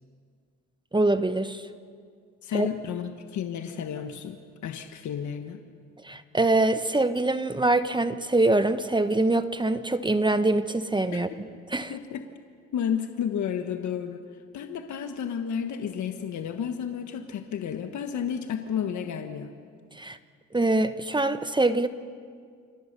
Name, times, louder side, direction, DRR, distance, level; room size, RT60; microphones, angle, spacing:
voice 1, 0.9-1.6 2.5-2.7 6.0-11.3 11.7-11.9 20.0-20.2 20.5-21.9, right 2 dB, 15° right, 11 dB, 1.0 m, -24 dB
voice 2, 2.4-5.6 11.1-11.4 11.9-12.3 12.7-19.5, left 8 dB, 70° left, 6 dB, 1.5 m, -32 dB
27.5 x 23.5 x 6.8 m, 2.1 s
cardioid pair, 90°, 30 cm